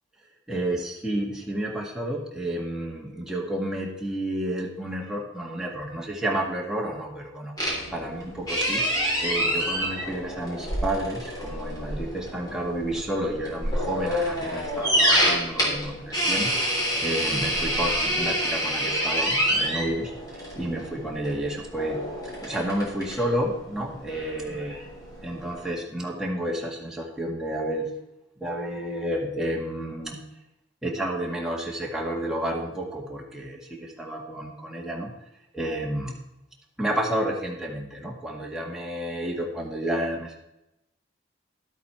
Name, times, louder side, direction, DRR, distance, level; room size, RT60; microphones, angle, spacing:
voice 1, 0.5-8.9 9.2-22.1 22.4-24.8 25.2-28.0 28.4-30.2 30.8-35.1 35.5-36.2 36.8-40.4, right 1 dB, 5° right, -2 dB, 1.7 m, -31 dB
sound 1, 7.6-25.7, equal, 20° left, 3.4 m, -28 dB
12.0 x 8.3 x 4.4 m, 0.88 s
head